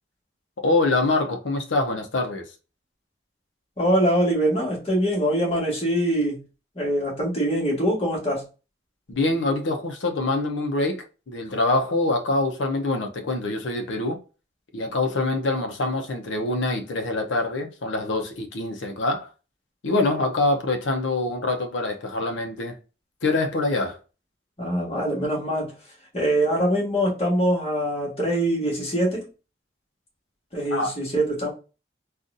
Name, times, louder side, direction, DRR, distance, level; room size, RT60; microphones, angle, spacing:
voice 1, 0.6-2.5 9.1-14.2 14.7-19.3 19.8-22.8 23.2-24.0 30.7-30.9, left 2 dB, 90° left, 0.7 m, -25 dB
voice 2, 3.8-6.4 6.7-8.4 24.6-25.7 26.1-29.2 30.5-31.5, right 1 dB, 35° left, 1.4 m, -23 dB
3.9 x 2.4 x 2.5 m
head